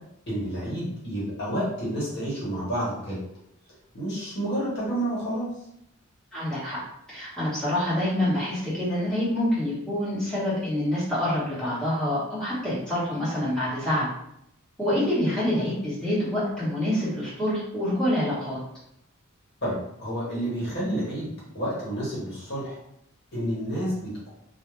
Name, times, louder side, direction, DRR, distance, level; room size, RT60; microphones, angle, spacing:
voice 1, 0.3-3.2 3.9-5.5 19.6-22.8 23.3-24.3, right 1 dB, 50° left, -7 dB, 1.0 m, -30 dB
voice 2, 6.3-6.8 7.1-14.1 14.8-18.6, left 1 dB, 5° left, -11 dB, 1.1 m, -26 dB
2.4 x 2.1 x 3.1 m, 0.75 s
head